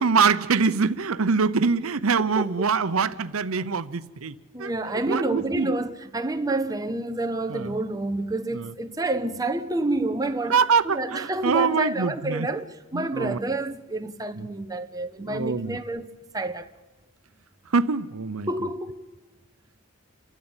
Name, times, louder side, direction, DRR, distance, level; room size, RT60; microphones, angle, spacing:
voice 1, 0.0-5.7 6.5-6.6 7.5-7.7 8.5-8.7 10.5-12.5 12.9-13.4 14.4-14.5 15.2-15.8 17.7-18.5, right 5 dB, 90° right, 0.8 m, -24 dB
voice 2, 4.5-10.6 10.8-16.1 16.3-16.7 18.5-19.0, right 2 dB, 20° right, 1.1 m, -28 dB
29.0 x 13.0 x 8.9 m
head